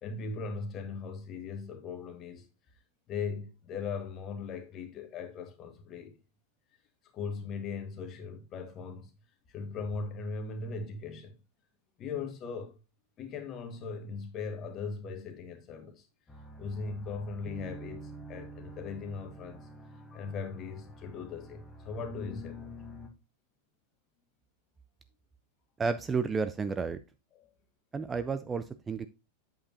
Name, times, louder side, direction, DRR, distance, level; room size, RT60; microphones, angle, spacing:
voice 1, 0.0-2.5 3.1-6.2 7.1-9.1 9.5-11.4 12.0-12.8 13.2-16.1 16.6-19.7 20.1-22.7 27.3-27.5, left 4 dB, 30° left, 1.6 m, -39 dB
sound 1, 16.3-23.1, equal, 10° left, 1.5 m, -47 dB
voice 2, 25.8-27.0 27.9-29.1, right 5 dB, 15° right, 0.5 m, -31 dB
8.6 x 7.3 x 2.7 m
figure-of-eight pair, 90°, 0 cm